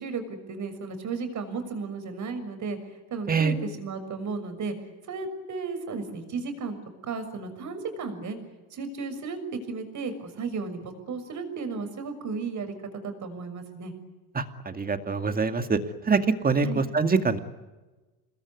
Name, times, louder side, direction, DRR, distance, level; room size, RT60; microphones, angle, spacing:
voice 1, 0.0-2.8 3.1-4.7 5.1-6.8 7.0-8.4 8.7-12.7 13.0-13.9 16.6-16.8, right 4 dB, 40° right, 9 dB, 6.5 m, -34 dB
voice 2, 14.3-15.8 16.0-17.4, right 4 dB, 20° right, 8 dB, 2.3 m, -24 dB
27.5 x 21.0 x 9.7 m, 1.2 s
cardioid pair, 120°, 44 cm